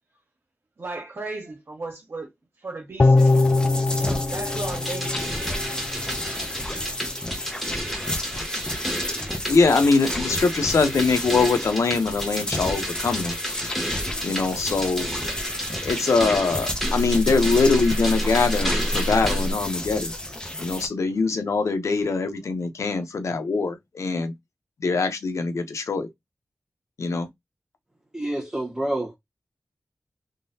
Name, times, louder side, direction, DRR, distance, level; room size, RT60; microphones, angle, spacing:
voice 1, 0.8-2.3 2.6-3.5 3.9-5.9, right 2 dB, 55° right, 1.5 m, -36 dB
sound 1, 3.0-6.3 6.7-6.8, left 3 dB, 35° left, 0.5 m, -22 dB
sound 2, 3.2-20.9, left 1 dB, 15° left, 1.0 m, -32 dB
sound 3, 4.7-19.5, equal, ahead, 1.9 m, -30 dB
voice 2, 9.5-13.4 14.2-15.1 15.8-20.1 20.6-24.3 24.8-26.1 27.0-27.3, left 4 dB, 85° left, 0.8 m, -23 dB
voice 3, 28.1-29.1, right 1 dB, 15° right, 1.4 m, -28 dB
3.7 x 3.1 x 2.7 m
wide cardioid pair, 90°, 5 cm